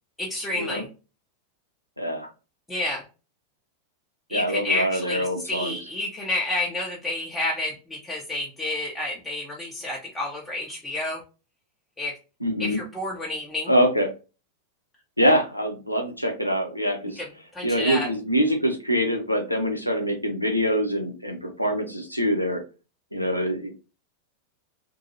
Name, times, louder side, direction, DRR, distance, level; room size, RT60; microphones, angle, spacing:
voice 1, 0.2-0.9 2.7-3.0 4.3-11.2 12.0-12.2 12.6-13.7 17.2-17.3 17.5-18.1, left 2 dB, 5° left, -5 dB, 0.6 m, -30 dB
voice 2, 2.0-2.3 4.3-5.8 12.4-12.8 13.7-14.1 15.2-17.2 17.6-22.6 23.1-23.7, equal, 90° left, 3 dB, 0.5 m, -24 dB
2.7 x 2.6 x 2.6 m, 0.32 s
figure-of-eight pair, 90°, 0 cm